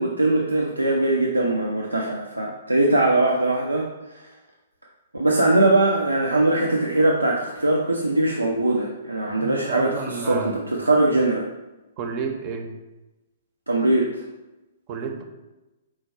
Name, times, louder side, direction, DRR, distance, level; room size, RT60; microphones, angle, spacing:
voice 1, 0.0-3.9 5.1-11.5 13.7-14.2, right 2 dB, 85° right, -1 dB, 0.5 m, -21 dB
voice 2, 9.4-10.6 12.0-12.7 14.9-15.2, right 5 dB, 35° right, 4 dB, 0.6 m, -30 dB
4.6 x 2.3 x 4.2 m, 1.0 s
figure-of-eight pair, 115°, 0 cm